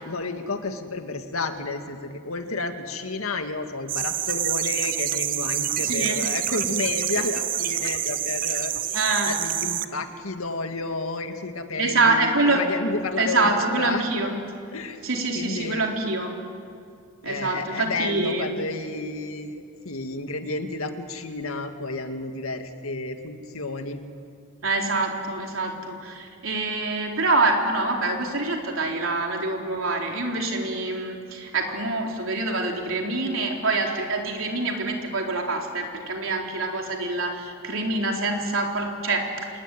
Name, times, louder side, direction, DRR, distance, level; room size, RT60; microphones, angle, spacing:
voice 1, 0.0-13.5 13.8-14.1 14.7-15.0 15.3-15.8 17.2-24.0, left 3 dB, 85° left, 6 dB, 2.1 m, -31 dB
sound 1, 3.9-9.8, right 11 dB, 40° right, 0.8 m, -27 dB
voice 2, 5.8-6.2 8.9-9.3 11.8-12.6 13.2-14.3 15.0-16.3 17.2-18.5 24.6-39.3, right 3 dB, 70° right, 1 dB, 4.0 m, -25 dB
27.5 x 20.0 x 9.3 m, 2.3 s
head